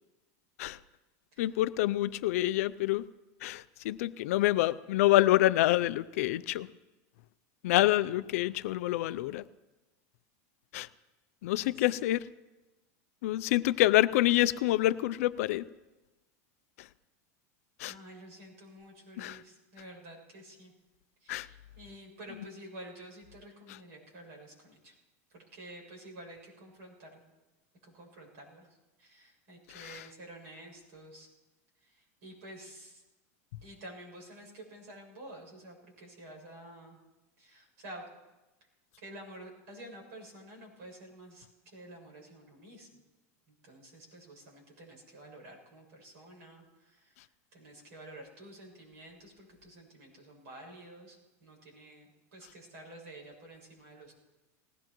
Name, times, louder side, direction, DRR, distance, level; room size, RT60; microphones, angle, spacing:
voice 1, 1.4-3.0 3.4-6.7 7.6-9.4 10.7-10.9 11.4-12.2 13.2-15.6 17.8-17.9 19.2-19.4 21.3-21.5 29.8-30.0, left 15 dB, 65° left, 15 dB, 0.4 m, -27 dB
voice 2, 11.6-11.9 17.8-20.7 21.2-24.9 25.3-27.2 27.8-28.7 29.0-31.3 31.8-33.0 33.6-37.0 37.4-38.1 39.0-41.5 41.7-43.0 43.5-47.2 47.5-54.1, right 1 dB, 60° right, -1 dB, 7.0 m, -50 dB
20.0 x 17.5 x 3.1 m, 1.1 s
supercardioid pair, 175°, 9 cm